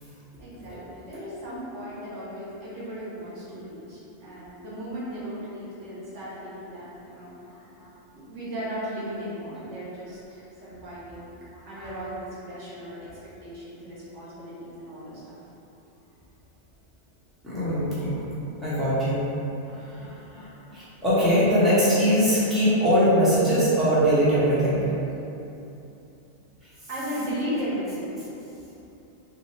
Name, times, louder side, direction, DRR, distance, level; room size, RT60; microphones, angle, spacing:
voice 1, 0.4-7.6 8.1-11.4 11.6-13.1 13.4-15.4 26.9-28.1, equal, 85° right, -9 dB, 1.3 m, -36 dB
voice 2, 11.5-11.9 17.4-18.2 18.6-19.2 19.6-24.9, equal, ahead, -13 dB, 1.0 m, -22 dB
3.8 x 2.3 x 3.0 m, 2.9 s
omnidirectional pair, 1.2 m